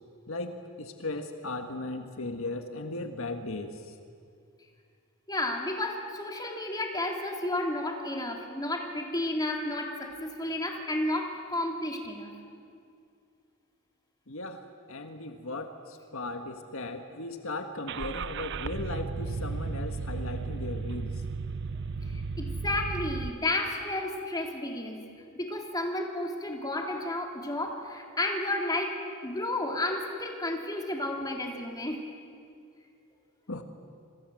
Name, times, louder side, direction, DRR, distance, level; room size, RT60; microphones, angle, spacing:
voice 1, 0.3-3.9 14.3-21.2 33.5-33.6, left 2 dB, 70° left, 6 dB, 1.7 m, -37 dB
voice 2, 5.3-12.3 22.4-25.0 25.3-29.0 29.2-32.0, left 1 dB, 20° left, 1 dB, 3.2 m, -32 dB
Car / Engine starting, 17.9-23.3, right 4 dB, 55° right, 0.6 m, -34 dB
27.5 x 26.0 x 7.8 m, 2.4 s
head